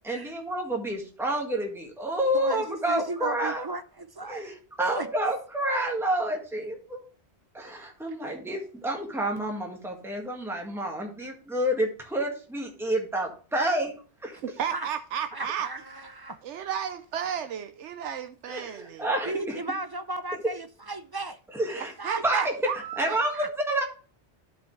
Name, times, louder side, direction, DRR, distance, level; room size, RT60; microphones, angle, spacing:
voice 1, 0.0-3.6 4.3-7.0 7.5-13.9 14.2-14.4 18.5-19.6 21.5-21.9 22.2-22.5 23.0-23.8, right 1 dB, ahead, 1.8 m, -29 dB
voice 2, 2.3-4.5 4.9-5.1 14.3-14.4 14.7-14.9 15.3-16.4 19.2-21.4 21.7-22.5 23.1-23.5, right 2 dB, 35° right, 0.4 m, -35 dB
voice 3, 14.6-15.7 16.4-19.1 22.0-23.4, right 8 dB, 90° right, 1.0 m, -33 dB
12.5 x 5.6 x 3.2 m
omnidirectional pair, 1.2 m